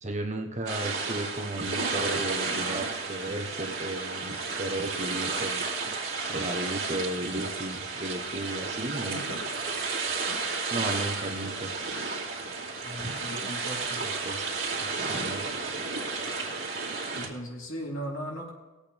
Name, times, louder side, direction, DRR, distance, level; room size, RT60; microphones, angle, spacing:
voice 1, 0.0-5.7 6.3-9.4 10.7-11.8 14.0-14.6 15.0-15.4, right 1 dB, 30° right, 3 dB, 1.1 m, -34 dB
sound 1, 0.7-17.3, right 4 dB, 60° right, 2.5 m, -32 dB
voice 2, 9.1-9.4 12.8-14.0 17.1-18.5, equal, 65° left, -3 dB, 3.5 m, -38 dB
20.5 x 8.4 x 3.5 m, 1.1 s
head